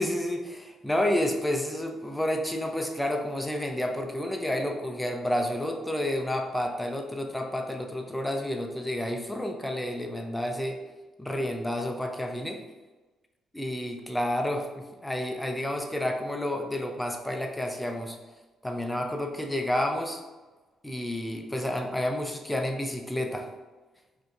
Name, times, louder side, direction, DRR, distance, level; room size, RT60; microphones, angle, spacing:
voice 1, 0.0-10.8 11.2-12.6 13.5-18.2 18.6-20.2 20.8-23.5, left 1 dB, 5° left, 3 dB, 0.5 m, -30 dB
4.9 x 2.7 x 2.5 m, 1.2 s
cardioid pair, 90°, 0 cm